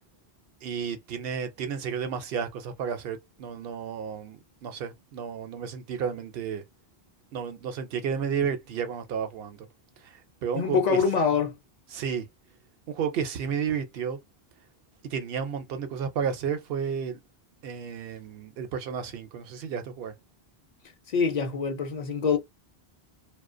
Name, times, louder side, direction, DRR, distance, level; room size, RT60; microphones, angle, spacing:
voice 1, 0.6-6.6 7.3-9.7 10.0-11.0 11.9-12.3 12.9-14.2 15.0-17.2 17.6-20.1, right 7 dB, 70° right, 0.8 m, -32 dB
voice 2, 10.5-11.5 21.1-22.4, left 5 dB, 55° left, 0.5 m, -24 dB
2.4 x 2.1 x 2.4 m
omnidirectional pair, 1.0 m